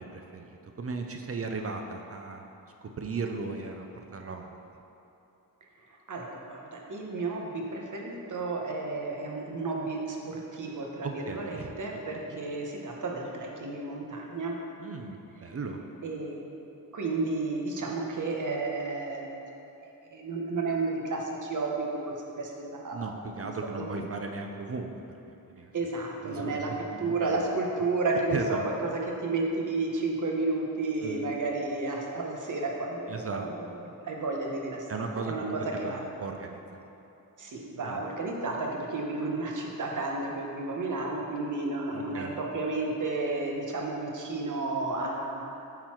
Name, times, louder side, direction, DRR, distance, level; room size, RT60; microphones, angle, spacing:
voice 1, 0.0-2.4 2.8-4.6 11.0-11.8 12.1-12.4 14.8-15.8 22.9-24.9 25.3-25.7 26.2-27.4 28.3-28.7 31.0-31.2 33.1-33.5 34.9-36.9 37.8-38.0 41.9-42.4, right 4 dB, 40° right, 4 dB, 0.5 m, -37 dB
voice 2, 5.9-14.6 16.0-16.4 16.9-19.4 19.8-23.1 23.4-23.5 23.8-23.9 25.7-26.7 27.0-36.0 37.4-45.6, right 3 dB, 55° right, 0 dB, 1.1 m, -32 dB
8.7 x 4.0 x 4.5 m, 2.9 s
wide cardioid pair, 110°, 36 cm